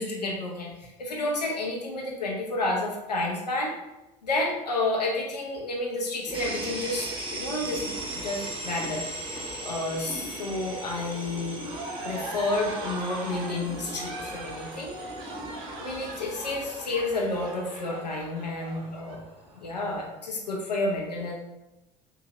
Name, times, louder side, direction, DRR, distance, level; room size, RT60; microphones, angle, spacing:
voice 1, 0.0-3.7 4.2-7.9 8.2-9.0 9.6-11.6 12.0-14.9 15.8-19.2 19.6-21.4, left 2 dB, 85° left, -2 dB, 0.6 m, -30 dB
sound 1, 6.3-17.5, equal, ahead, 0.7 m, -43 dB
sound 2, 6.3-20.0, right 2 dB, 25° right, 1.0 m, -40 dB
sound 3, 11.6-19.2, right 2 dB, 65° right, 0.7 m, -40 dB
3.7 x 2.8 x 2.7 m, 0.95 s
figure-of-eight pair, 65°, 21 cm